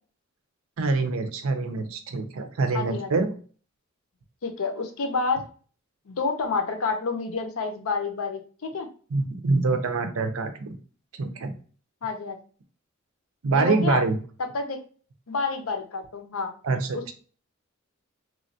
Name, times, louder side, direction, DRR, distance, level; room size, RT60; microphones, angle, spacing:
voice 1, 0.8-3.3 9.1-10.8 11.2-11.5 13.4-14.2 16.6-17.1, right 3 dB, 75° right, 7 dB, 0.5 m, -25 dB
voice 2, 2.7-3.1 4.4-5.4 6.1-8.9 12.0-12.4 13.5-14.0 14.5-14.8 15.3-16.5 16.9-17.1, left 4 dB, 75° left, 5 dB, 0.6 m, -29 dB
3.0 x 2.2 x 2.6 m, 0.40 s
head